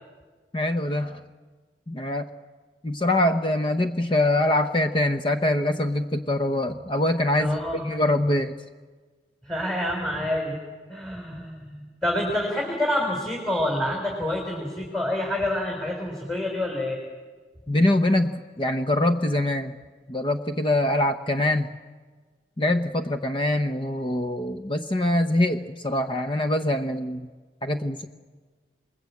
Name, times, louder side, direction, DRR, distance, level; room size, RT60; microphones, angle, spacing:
voice 1, 0.5-1.2 1.9-2.3 2.8-8.5 11.3-11.4 17.7-19.7 20.1-21.7 22.6-27.3 27.6-28.1, left 1 dB, 30° left, 7 dB, 0.8 m, -24 dB
voice 2, 7.4-7.8 9.4-10.6 10.9-17.0, left 1 dB, ahead, 0 dB, 4.1 m, -27 dB
28.0 x 21.0 x 8.4 m, 1.4 s
head